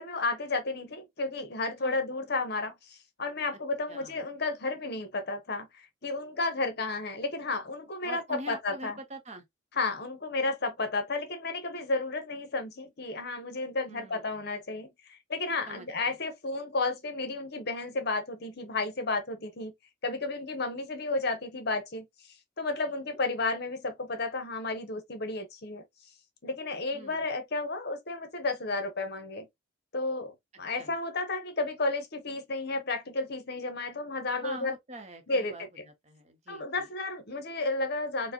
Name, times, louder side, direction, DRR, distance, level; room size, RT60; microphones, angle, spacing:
voice 1, 0.0-9.0 9.7-19.7 20.0-22.1 22.6-25.8 26.4-29.5 29.9-34.8 35.3-35.7 36.5-38.3, left 3 dB, 50° left, 0.8 m, -32 dB
voice 2, 8.0-9.4 13.9-14.5 15.7-15.9 23.1-23.2 26.9-27.2 30.8-30.9 34.4-35.6 36.0-36.8, right 1 dB, 30° right, 0.7 m, -44 dB
4.6 x 2.1 x 2.7 m
head